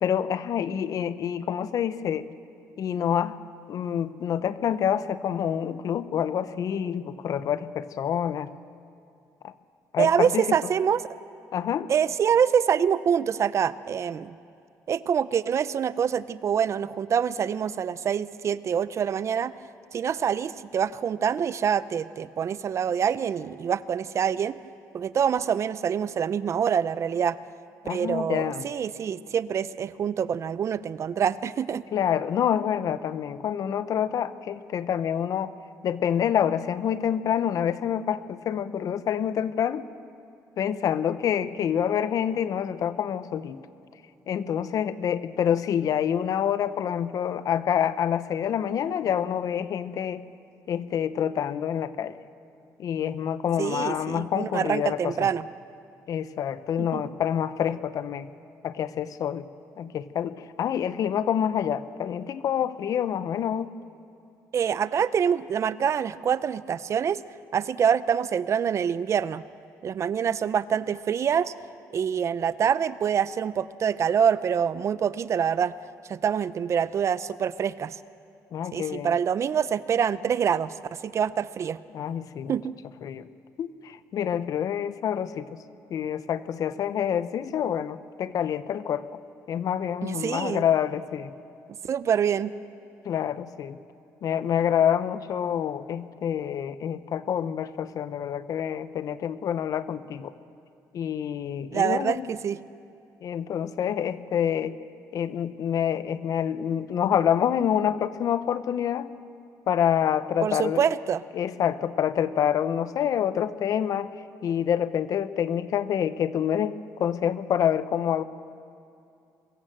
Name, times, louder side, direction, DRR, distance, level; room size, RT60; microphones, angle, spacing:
voice 1, 0.0-2.3 2.8-3.4 3.7-8.5 9.4-9.5 9.9-10.5 11.5-11.9 27.8-28.7 31.9-35.5 35.8-39.9 40.6-43.6 44.3-50.2 50.7-52.1 52.8-55.3 56.1-58.3 58.6-59.5 59.8-63.7 78.5-79.2 81.9-82.6 83.0-83.3 83.6-85.6 85.9-89.0 89.5-91.3 93.0-93.8 94.2-100.3 100.9-102.2 103.2-104.7 105.1-109.1 109.7-110.8 111.3-114.1 114.4-118.2, left 9 dB, 60° left, 14 dB, 0.8 m, -27 dB
voice 2, 10.0-11.0 11.9-14.4 14.9-19.5 19.9-24.6 24.9-27.4 27.9-31.9 53.6-55.5 56.8-57.0 64.5-67.2 67.5-69.4 69.8-71.5 71.9-75.7 76.1-78.0 78.7-81.8 82.5-82.7 90.0-90.6 91.8-92.5 101.7-102.6 110.4-111.2, right 8 dB, 45° right, 17 dB, 0.5 m, -25 dB
23.0 x 15.0 x 7.6 m, 2.5 s
cardioid pair, 115°, 7 cm